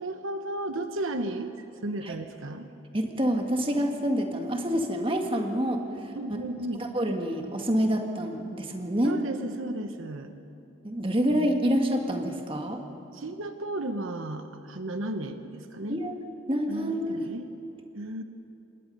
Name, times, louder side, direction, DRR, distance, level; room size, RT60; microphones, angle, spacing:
voice 1, 0.0-2.7 6.1-6.8 9.0-10.3 13.1-16.0 16.7-17.5 17.9-18.2, right 1 dB, 80° right, 8 dB, 1.1 m, -34 dB
voice 2, 2.9-6.1 6.8-9.2 10.8-12.8 15.9-16.2 16.5-17.3, equal, 25° right, 3 dB, 1.7 m, -27 dB
26.0 x 20.5 x 5.4 m, 2.7 s
head